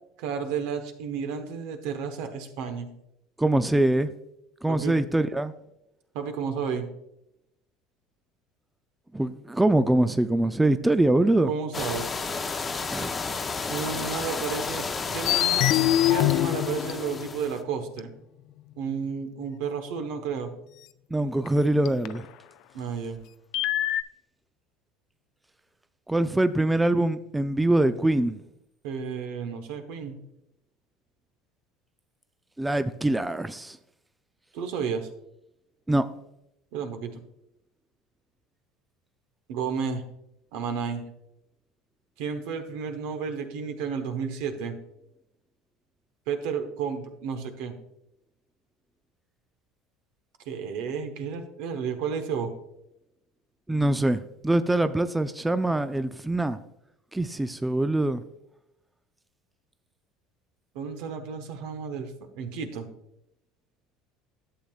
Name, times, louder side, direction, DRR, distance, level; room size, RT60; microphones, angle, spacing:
voice 1, 0.2-2.9 4.7-5.0 6.1-6.9 11.4-12.1 13.7-14.8 15.1-15.7 16.1-18.1 18.8-20.5 22.7-23.2 28.8-30.2 34.5-35.1 36.7-37.2 39.5-40.0 40.5-41.0 42.2-44.7 46.3-47.7 50.5-52.5 60.7-62.9, right 6 dB, 70° right, 1.1 m, -32 dB
voice 2, 3.4-4.1 4.6-5.5 9.1-11.5 12.9-13.1 21.1-22.3 26.1-28.4 32.6-33.8 35.9-36.0 53.7-56.6 57.1-58.2, right 1 dB, 10° right, 0.3 m, -23 dB
sound 1, 11.7-17.6, left 4 dB, 25° left, 0.7 m, -32 dB
sound 2, 15.3-17.5 18.0-18.1 21.5-21.6 21.9-22.2 23.5-24.0, left 14 dB, 65° left, 0.4 m, -24 dB
11.5 x 7.1 x 2.4 m
supercardioid pair, 95°, 0 cm